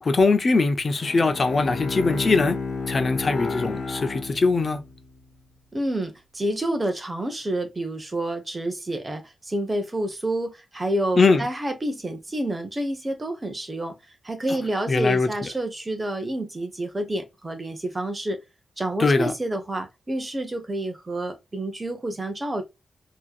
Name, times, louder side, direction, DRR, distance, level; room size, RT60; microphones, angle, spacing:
voice 1, 0.0-2.6 2.9-4.8 11.2-11.4 14.9-15.3 19.0-19.3, left 3 dB, 35° left, 0.8 m, -21 dB
Bowed string instrument, 1.0-5.0, left 4 dB, 60° left, 1.1 m, -31 dB
voice 2, 5.7-14.0 14.2-18.4 18.8-22.6, right 1 dB, 20° right, 1.0 m, -29 dB
4.4 x 3.0 x 2.3 m
wide cardioid pair, 135°, 0 cm